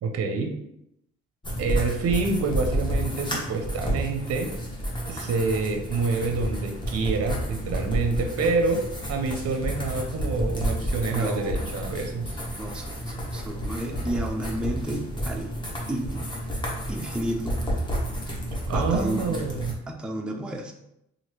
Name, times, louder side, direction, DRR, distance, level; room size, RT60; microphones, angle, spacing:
voice 1, 0.0-0.5 1.6-4.5 5.1-8.8 9.1-12.4 18.7-19.8, right 4 dB, 55° right, 4 dB, 0.6 m, -27 dB
sound 1, 1.4-19.7, equal, 15° left, 0.8 m, -30 dB
voice 2, 11.1-11.6 12.6-15.5 15.9-16.3 16.9-17.6 18.7-20.7, right 1 dB, 5° right, 2 dB, 0.3 m, -32 dB
3.0 x 2.5 x 2.9 m, 0.81 s
cardioid pair, 90°, 30 cm